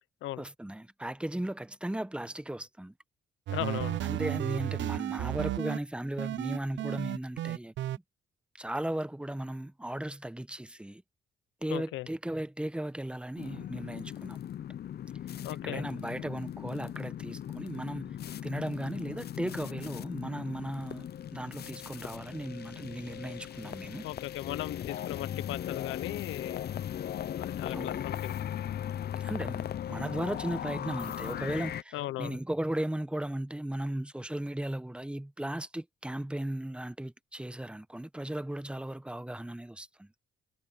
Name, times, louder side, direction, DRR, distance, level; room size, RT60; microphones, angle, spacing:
voice 1, 0.4-2.9 4.0-8.0 8.5-11.0 11.6-14.4 15.6-18.2 18.4-24.1 27.7-28.0 29.2-40.1, right 1 dB, 5° right, 1.0 m, -36 dB
voice 2, 3.5-4.0 11.7-12.1 15.4-15.9 24.0-26.6 27.4-28.4 31.9-32.4, left 15 dB, 90° left, 0.8 m, -37 dB
sound 1, 3.5-5.8 6.2-8.0, right 14 dB, 70° right, 0.6 m, -33 dB
sound 2, 13.4-31.8, left 10 dB, 55° left, 0.6 m, -38 dB
cardioid pair, 90°, 20 cm